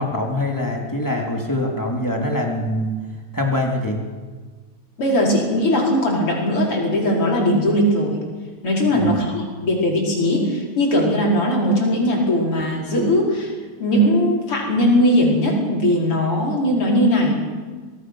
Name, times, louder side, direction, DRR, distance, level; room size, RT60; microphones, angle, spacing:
voice 1, 0.0-2.9 3.3-4.0 8.9-9.2, left 1 dB, 10° left, 0 dB, 3.2 m, -23 dB
voice 2, 5.0-8.2 8.6-13.5 13.8-17.4, equal, 90° left, -2 dB, 5.8 m, -19 dB
24.5 x 18.5 x 6.4 m, 1.4 s
omnidirectional pair, 2.4 m